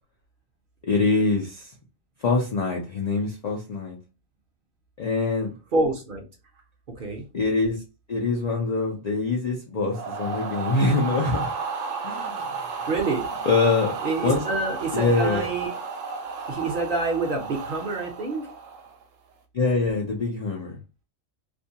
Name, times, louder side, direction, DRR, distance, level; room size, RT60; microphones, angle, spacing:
voice 1, 0.9-1.7 2.2-4.0 5.0-5.5 7.3-7.8 8.1-11.5 12.0-12.5 13.5-14.0 14.2-14.4 14.9-15.5 19.5-20.8, left 3 dB, 90° left, -1 dB, 0.3 m, -24 dB
voice 2, 5.7-6.2 7.0-7.3 12.9-13.4 14.0-15.7 16.5-18.5, right 3 dB, 55° right, 1 dB, 0.6 m, -27 dB
sound 1, 9.9-19.0, right 5 dB, 75° right, 0.9 m, -33 dB
2.5 x 2.2 x 2.7 m, 0.29 s
omnidirectional pair, 1.3 m